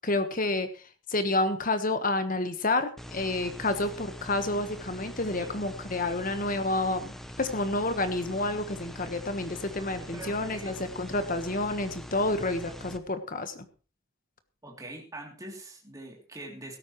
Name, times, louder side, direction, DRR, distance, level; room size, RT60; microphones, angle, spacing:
voice 1, 0.0-0.8 1.1-13.7, left 2 dB, 40° left, 9 dB, 1.3 m, -29 dB
sound 1, 3.0-13.0, equal, ahead, 0.9 m, -43 dB
voice 2, 10.0-10.7 14.6-16.8, right 1 dB, 15° right, 0 dB, 3.0 m, -43 dB
16.5 x 13.5 x 3.2 m, 0.35 s
head